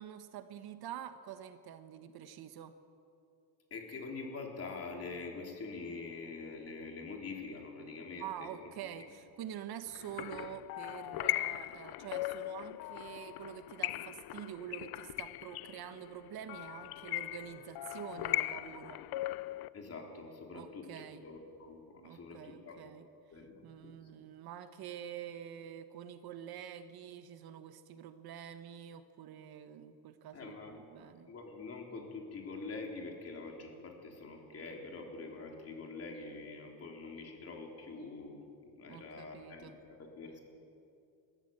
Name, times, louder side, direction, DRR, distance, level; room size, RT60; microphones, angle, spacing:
voice 1, 0.0-2.8 8.2-19.0 20.5-21.2 22.0-23.1 23.6-31.3 38.9-39.8, right 10 dB, 60° right, 10 dB, 1.2 m, -47 dB
voice 2, 3.7-9.1 19.7-20.9 21.2-21.8 22.1-22.9 23.3-23.9 30.3-38.5 38.8-40.4, left 3 dB, 35° left, 1 dB, 4.0 m, -45 dB
sound 1, 9.9-19.7, left 16 dB, 60° left, 0.6 m, -39 dB
20.5 x 15.0 x 9.0 m, 2.6 s
cardioid pair, 130°, 43 cm